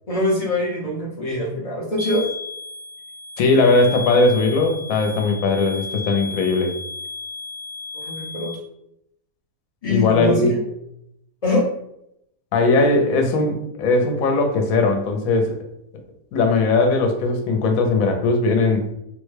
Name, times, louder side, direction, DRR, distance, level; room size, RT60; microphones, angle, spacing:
voice 1, 0.1-2.3 7.9-8.5 9.8-10.6 11.4-11.7, left 2 dB, 50° left, -3 dB, 0.4 m, -23 dB
sound 1, 2.0-8.5, left 3 dB, 70° right, 1.2 m, -34 dB
voice 2, 3.4-6.7 9.8-10.5 12.5-15.6 16.3-18.9, left 3 dB, 75° left, 5 dB, 1.0 m, -19 dB
3.5 x 2.1 x 3.2 m, 0.80 s
omnidirectional pair, 1.5 m